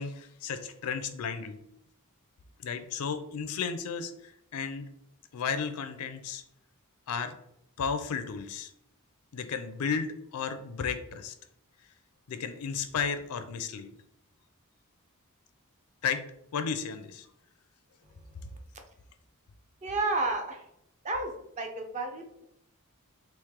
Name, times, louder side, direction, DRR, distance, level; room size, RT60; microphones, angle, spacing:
voice 1, 0.0-1.6 2.6-4.9 5.3-6.4 7.1-7.3 7.8-8.7 9.3-11.3 12.3-13.9 16.0-16.2 16.5-17.3, left 6 dB, 80° left, 9 dB, 0.4 m, -33 dB
voice 2, 19.8-20.6 21.0-22.4, right 2 dB, 35° right, 4 dB, 0.5 m, -31 dB
3.2 x 3.0 x 3.6 m, 0.77 s
head